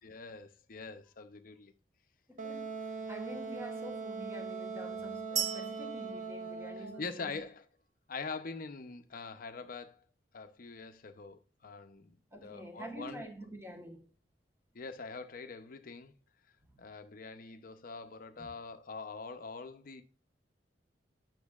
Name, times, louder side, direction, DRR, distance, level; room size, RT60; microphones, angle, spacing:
voice 1, 0.0-1.7 7.0-7.6 8.1-10.0 10.3-13.2 14.7-16.1 16.8-20.0, left 4 dB, 50° left, 0.6 m, -44 dB
voice 2, 2.3-7.4 12.3-14.1 16.6-16.8 18.4-18.5, right 1 dB, 15° right, 1.1 m, -47 dB
Wind instrument woodwind instrument, 2.4-7.1, right 4 dB, 45° right, 0.8 m, -40 dB
sound 1, 5.4-7.3, right 8 dB, 75° right, 0.9 m, -38 dB
8.3 x 6.3 x 2.3 m
head